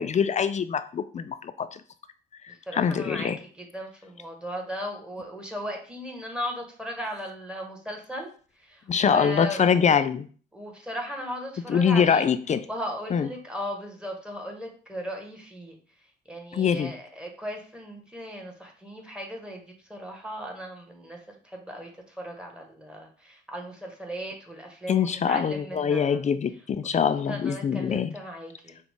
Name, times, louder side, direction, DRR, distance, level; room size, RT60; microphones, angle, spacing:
voice 1, 0.0-1.8 2.4-3.4 8.9-10.3 11.7-12.6 13.1-13.3 16.5-16.9 24.9-28.2, left 7 dB, 35° left, 12 dB, 0.4 m, -24 dB
voice 2, 2.5-8.3 8.6-10.0 10.5-12.3 12.7-15.8 16.3-26.2 27.1-28.8, equal, 5° right, 2 dB, 1.4 m, -37 dB
5.9 x 2.4 x 3.6 m, 0.41 s
cardioid pair, 90°, 20 cm